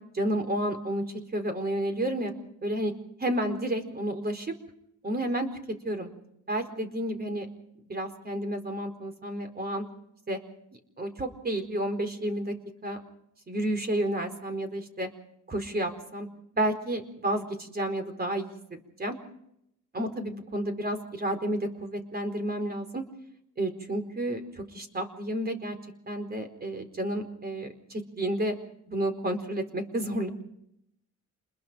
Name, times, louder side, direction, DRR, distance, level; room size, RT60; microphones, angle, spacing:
voice 1, 0.1-1.0 1.3-2.3 2.6-2.9 3.2-4.5 5.0-5.5 5.8-6.1 6.5-7.5 7.9-9.8 10.3-10.4 11.0-12.5 12.8-13.0 13.5-15.1 15.5-16.3 16.5-19.2 19.9-23.0 23.6-25.8 26.1-28.5 28.9-30.3, right 1 dB, 30° right, 7 dB, 4.5 m, -31 dB
28.5 x 21.5 x 5.2 m, 0.77 s
cardioid pair, 90°, 30 cm